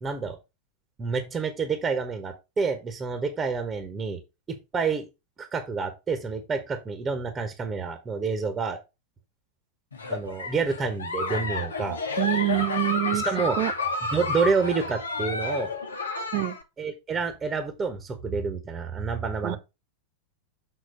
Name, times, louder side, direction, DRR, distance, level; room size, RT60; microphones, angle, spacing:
voice 1, 0.0-0.4 1.0-4.2 4.5-5.1 5.4-8.8 10.1-12.0 13.1-13.6 14.1-15.7 16.8-19.6, right 5 dB, 20° right, 1.2 m, -28 dB
Giggle, 9.9-16.6, left 3 dB, 75° left, 1.2 m, -30 dB
voice 2, 12.2-13.3 13.6-13.7 16.3-16.6 19.4-19.6, right 18 dB, 45° right, 0.6 m, -25 dB
6.8 x 4.0 x 5.1 m
figure-of-eight pair, 90°, 0 cm